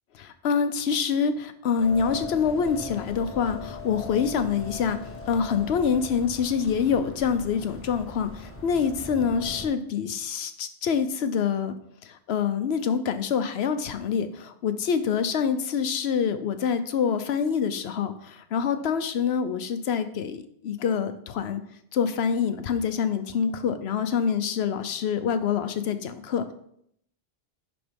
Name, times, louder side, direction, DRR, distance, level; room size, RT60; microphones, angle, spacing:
voice 1, 0.1-11.7 12.0-21.6 21.9-26.5, left 6 dB, 80° left, 10 dB, 1.0 m, -26 dB
sound 1, 1.8-9.7, left 3 dB, 15° left, 1.1 m, -40 dB
10.5 x 3.5 x 5.2 m, 0.71 s
omnidirectional pair, 1.1 m